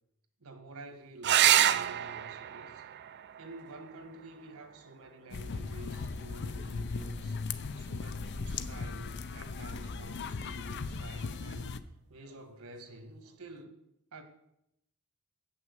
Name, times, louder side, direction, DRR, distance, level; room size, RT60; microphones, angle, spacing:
voice 1, 0.4-2.9 3.4-7.4 7.8-11.8 12.1-13.8 14.1-14.2, right 2 dB, 70° right, 1.5 m, -49 dB
sound 1, 1.2-6.3 8.1-8.8 12.2-12.3 12.7-12.8, right 11 dB, 50° right, 0.4 m, -30 dB
sound 2, 5.3-11.8, left 4 dB, 50° left, 0.5 m, -38 dB
7.6 x 6.1 x 7.9 m
head